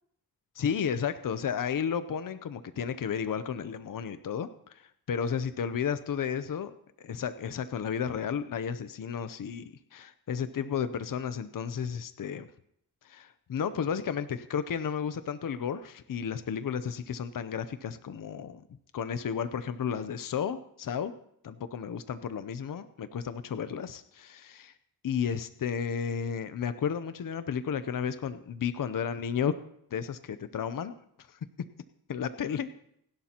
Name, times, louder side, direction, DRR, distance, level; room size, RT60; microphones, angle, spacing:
voice 1, 0.6-12.5 13.0-18.6 18.9-21.1 21.4-24.7 25.0-29.5 29.9-30.9 31.3-31.4 32.1-32.7, left 7 dB, 60° left, 11 dB, 0.7 m, -33 dB
27.5 x 11.5 x 2.9 m, 0.72 s
wide cardioid pair, 175°, 37 cm